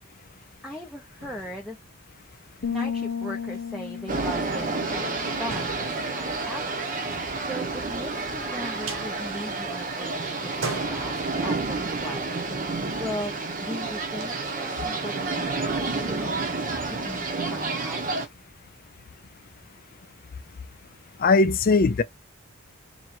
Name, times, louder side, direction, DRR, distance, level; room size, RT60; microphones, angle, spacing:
voice 1, 0.6-1.8 2.7-18.3, left 1 dB, ahead, 0.6 m, -39 dB
sound 1, 1.2-2.5 3.0-3.1 3.4-3.6 4.0-4.5 4.7-4.8 5.5-8.2 8.6-10.0 10.4-12.0, right 3 dB, 70° right, 1.0 m, -40 dB
sound 2, 2.6-6.3, left 7 dB, 70° left, 0.8 m, -34 dB
sound 3, 4.1-18.3, right 3 dB, 40° right, 0.8 m, -30 dB
voice 2, 21.2-22.0, left 3 dB, 45° left, 0.4 m, -19 dB
3.0 x 2.8 x 4.3 m
head